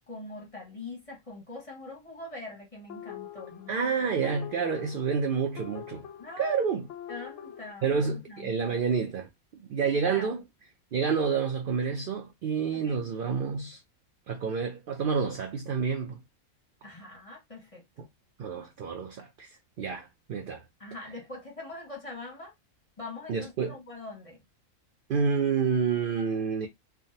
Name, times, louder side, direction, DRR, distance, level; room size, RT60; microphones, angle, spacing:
voice 1, 0.1-4.2 6.2-6.6 7.1-8.8 9.8-10.4 12.7-13.0 16.8-18.1 20.8-22.5 23.0-24.4, left 2 dB, 30° left, 0.7 m, -43 dB
sound 1, 2.9-7.7, left 11 dB, 70° left, 0.8 m, -45 dB
voice 2, 3.7-6.1 6.4-6.9 7.8-10.4 10.9-13.8 14.3-16.2 18.4-20.6 23.3-23.7 25.1-26.7, right 6 dB, 80° right, 0.4 m, -29 dB
3.5 x 2.1 x 2.7 m
omnidirectional pair, 1.5 m